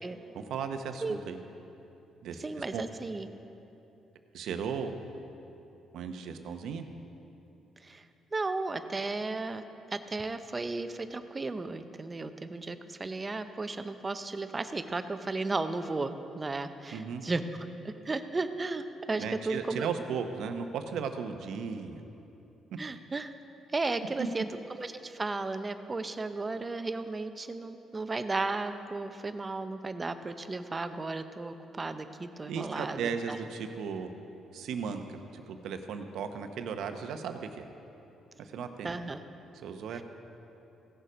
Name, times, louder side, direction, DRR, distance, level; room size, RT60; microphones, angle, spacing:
voice 1, 0.3-1.4 2.2-2.4 2.7-2.8 4.3-5.0 5.9-6.8 16.9-17.2 19.2-22.0 32.5-34.1 34.5-37.6 38.4-38.9 39.6-40.0, right 6 dB, 80° right, 7 dB, 0.8 m, -36 dB
voice 2, 2.4-3.3 7.8-8.1 8.3-9.6 9.9-17.4 17.8-19.9 22.8-23.3 23.7-24.4 24.7-33.4 38.8-39.2 39.9-40.0, right 3 dB, 25° right, 10 dB, 0.6 m, -34 dB
16.5 x 6.8 x 5.1 m, 3.0 s
cardioid pair, 90°, 0 cm